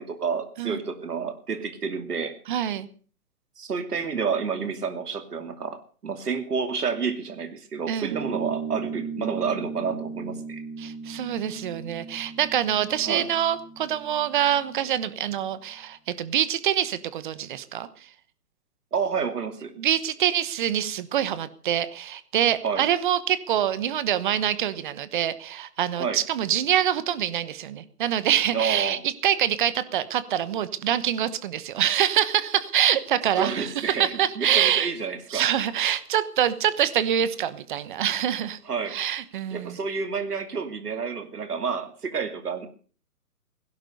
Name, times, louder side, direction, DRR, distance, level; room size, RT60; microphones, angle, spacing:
voice 1, 0.0-2.7 3.6-10.6 13.0-13.3 18.9-19.7 22.6-22.8 26.0-26.2 28.5-29.0 33.4-35.4 38.7-39.0 39.5-42.7, right 5 dB, 75° right, 9 dB, 2.7 m, -29 dB
voice 2, 2.5-2.9 7.9-8.2 10.8-17.9 19.8-34.9 35.3-38.6 38.9-39.8, right 10 dB, 30° right, 15 dB, 1.1 m, -25 dB
sound 1, 8.1-15.1, right 5 dB, 50° right, 3.5 m, -37 dB
16.5 x 11.5 x 6.7 m, 0.42 s
hypercardioid pair, 145°, 46 cm